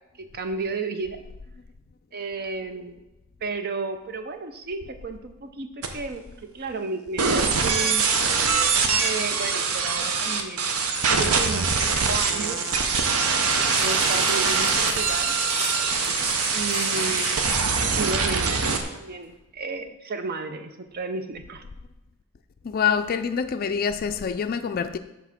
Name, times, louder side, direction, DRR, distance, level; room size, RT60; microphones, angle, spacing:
voice 1, 0.2-1.2 2.1-3.0 3.4-8.1 9.0-10.7 11.1-12.6 13.7-15.3 16.5-17.4 18.0-21.6, right 3 dB, 45° right, 0.6 m, -33 dB
sound 1, 5.8-5.9 7.2-18.8, right 5 dB, 75° right, 0.8 m, -23 dB
sound 2, 13.4-17.9 18.6-18.7, right 1 dB, 30° right, 1.5 m, -31 dB
voice 2, 22.6-25.0, left 7 dB, 40° left, 0.3 m, -26 dB
7.1 x 3.6 x 5.8 m
head